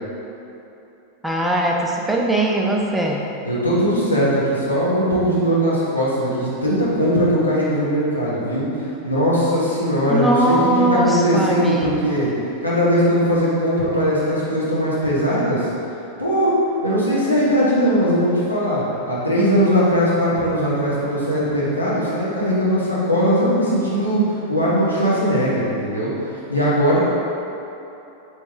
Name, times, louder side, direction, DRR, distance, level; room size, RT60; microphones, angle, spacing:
voice 1, 1.2-3.3 10.1-12.2, right 1 dB, 5° right, -1 dB, 0.5 m, -20 dB
voice 2, 3.4-8.7 9.0-12.3 12.6-15.7 16.2-16.5 16.8-24.2 24.5-27.0, equal, 85° left, -9 dB, 1.0 m, -19 dB
4.2 x 3.2 x 3.5 m, 2.9 s
figure-of-eight pair, 90°, 0 cm